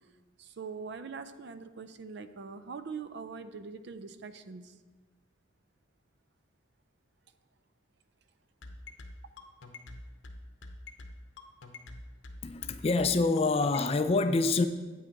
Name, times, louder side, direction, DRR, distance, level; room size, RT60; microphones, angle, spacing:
voice 1, 0.4-4.7, right 5 dB, 55° right, 0.4 m, -42 dB
sound 1, 8.6-13.9, left 2 dB, 65° left, 0.7 m, -46 dB
voice 2, 12.4-14.7, left 3 dB, 30° left, 0.3 m, -26 dB
8.5 x 6.3 x 4.5 m
head